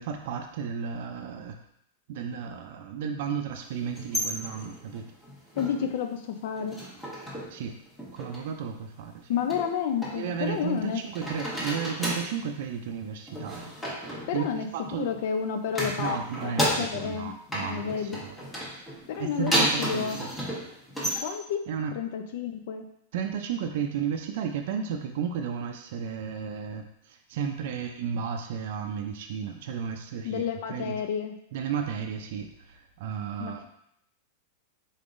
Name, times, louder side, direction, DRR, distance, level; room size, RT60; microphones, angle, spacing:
voice 1, 0.0-1.6 2.1-5.0 7.5-7.7 8.1-9.3 10.1-13.7 14.3-15.1 16.0-18.4 19.2-20.3 21.7-21.9 23.1-30.4 30.7-31.0 31.5-33.7, right 7 dB, 60° right, 4 dB, 0.4 m, -33 dB
sound 1, 3.8-6.0 6.3-7.6 7.9-8.4 9.5-10.9 11.1-12.4 13.3-15.2 15.7-17.2 17.5-21.2, equal, 10° left, 1.0 m, -32 dB
voice 2, 5.6-6.8 9.3-11.0 14.3-14.7 15.0-17.3 17.6-18.2 19.1-19.5 19.8-20.2 21.2-21.6 21.9-22.8 30.2-31.4 33.4-33.7, left 7 dB, 60° left, 6 dB, 0.5 m, -30 dB
3.9 x 3.6 x 2.5 m, 0.74 s
supercardioid pair, 145°, 0 cm